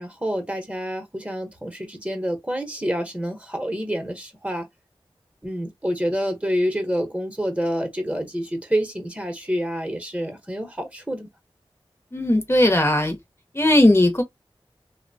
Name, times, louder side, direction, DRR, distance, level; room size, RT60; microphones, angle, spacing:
voice 1, 0.0-4.7 5.4-11.3, equal, 15° right, 0.8 m, -27 dB
voice 2, 12.1-13.2 13.5-14.2, left 1 dB, 25° left, 0.7 m, -17 dB
2.8 x 2.0 x 2.6 m
wide cardioid pair, 50°, 10 cm